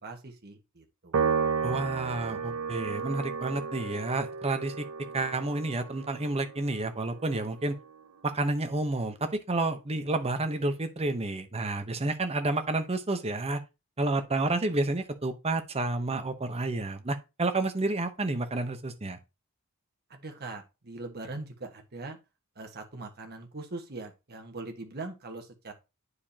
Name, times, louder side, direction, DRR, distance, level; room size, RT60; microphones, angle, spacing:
voice 1, 0.0-1.3 20.1-22.2 22.5-25.7, right 3 dB, 50° right, 1.4 m, -41 dB
Piano, 1.1-7.7, right 5 dB, 90° right, 0.6 m, -33 dB
voice 2, 1.6-4.8 5.1-7.8 8.2-13.6 14.0-19.2, right 2 dB, 30° right, 0.9 m, -30 dB
9.5 x 4.9 x 2.8 m
head